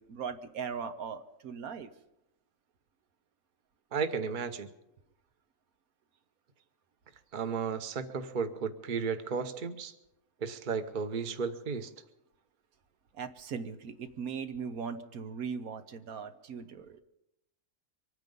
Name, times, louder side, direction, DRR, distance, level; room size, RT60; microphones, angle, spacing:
voice 1, 0.0-1.9 13.1-17.0, right 6 dB, 85° right, 8 dB, 1.5 m, -39 dB
voice 2, 3.9-4.7 7.3-9.9 10.4-11.9, right 5 dB, 40° right, 9 dB, 1.0 m, -34 dB
24.5 x 9.6 x 5.3 m, 0.84 s
omnidirectional pair, 1.5 m